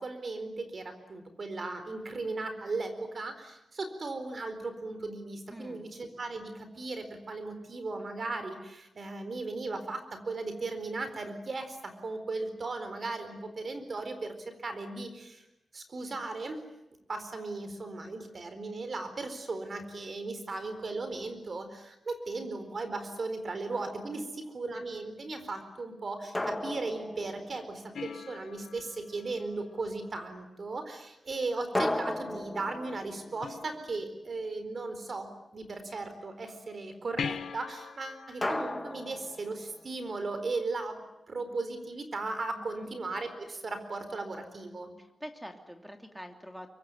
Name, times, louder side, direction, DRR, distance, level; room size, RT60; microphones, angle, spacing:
voice 1, 0.0-15.4 15.7-16.6 17.1-24.2 24.5-41.0 41.3-44.9, right 3 dB, 40° right, 8 dB, 4.3 m, -37 dB
voice 2, 5.5-5.9 24.1-24.3 42.5-42.9 45.0-46.7, equal, ahead, 5 dB, 2.9 m, -46 dB
sound 1, 23.7-24.3 26.3-28.2 31.7-34.4 38.4-40.1, left 1 dB, 15° left, 1.9 m, -36 dB
sound 2, 27.9-30.6 33.4-34.4 37.2-40.1 43.2-43.3, left 7 dB, 80° left, 1.3 m, -43 dB
24.5 x 23.0 x 9.7 m, 0.93 s
wide cardioid pair, 145°, 0 cm